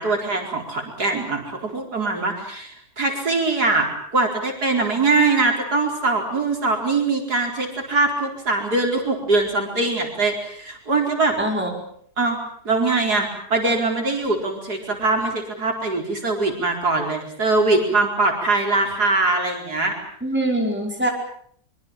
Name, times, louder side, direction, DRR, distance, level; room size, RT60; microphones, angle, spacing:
voice 1, 0.0-11.4 12.2-12.4 12.6-20.0, right 3 dB, 65° right, 2 dB, 5.1 m, -22 dB
voice 2, 11.4-11.8 20.2-21.1, right 1 dB, 5° right, 1 dB, 4.9 m, -23 dB
24.5 x 24.0 x 7.4 m, 0.62 s
omnidirectional pair, 1.8 m